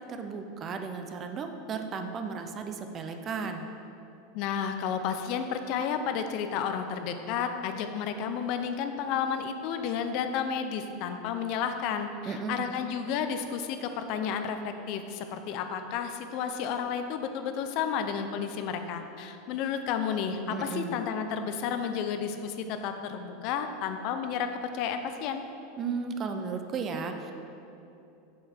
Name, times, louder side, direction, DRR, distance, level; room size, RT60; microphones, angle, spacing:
voice 1, 0.1-3.7 12.2-12.7 20.5-21.0 25.8-27.3, right 5 dB, 25° right, 6 dB, 0.5 m, -35 dB
voice 2, 4.3-25.4, left 7 dB, 45° left, 7 dB, 0.5 m, -32 dB
7.2 x 7.0 x 4.3 m, 2.8 s
supercardioid pair, 155°, 0 cm